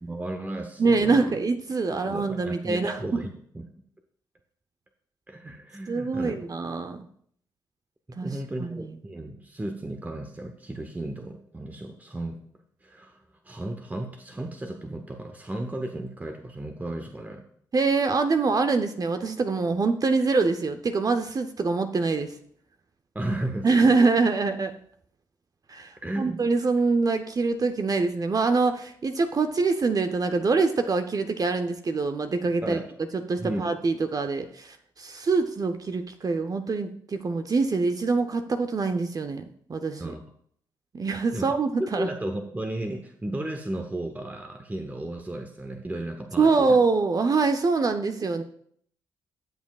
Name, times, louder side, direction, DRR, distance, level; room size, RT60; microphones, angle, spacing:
voice 1, 0.0-1.4 1.9-3.3 3.5-3.7 5.3-6.4 8.2-12.4 12.8-17.4 23.1-23.9 26.0-26.4 32.6-32.9 33.4-33.6 40.0-40.2 41.3-41.5 41.8-46.8, right 1 dB, 15° right, 5 dB, 0.9 m, -34 dB
voice 2, 0.8-3.2 5.9-7.0 8.2-8.3 8.6-8.9 17.7-22.3 23.6-24.7 25.7-32.8 33.1-39.4 39.7-40.1 40.9-42.1 46.4-48.4, right 4 dB, 40° right, 7 dB, 0.7 m, -24 dB
13.0 x 7.2 x 2.4 m, 0.63 s
hypercardioid pair, 40°, 10 cm